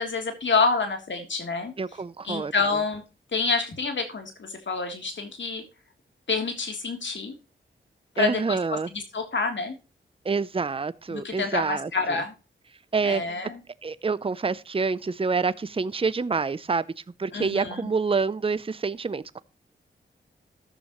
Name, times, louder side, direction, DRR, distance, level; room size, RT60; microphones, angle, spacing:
voice 1, 0.0-1.7 2.2-3.0 3.3-5.6 6.3-7.3 8.2-9.8 11.1-12.3 13.0-13.6 17.3-17.9, left 4 dB, 65° left, 3.4 m, -28 dB
voice 2, 1.8-2.5 8.2-8.9 10.2-12.2 12.9-13.2 13.8-16.9 17.2-19.4, right 4 dB, 25° right, 0.7 m, -27 dB
14.0 x 10.0 x 3.1 m
cardioid pair, 55°, 20 cm